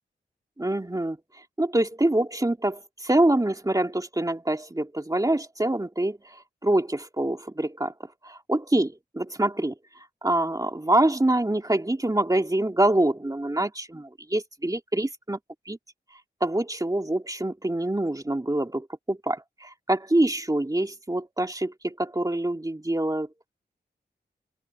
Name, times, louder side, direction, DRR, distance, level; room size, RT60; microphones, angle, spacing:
voice 1, 0.6-1.2 1.6-6.2 6.6-7.9 8.2-9.7 10.2-15.4 15.7-15.8 16.4-23.3, right 1 dB, 20° right, 2.7 m, -25 dB
open air
cardioid pair, 50°, 19 cm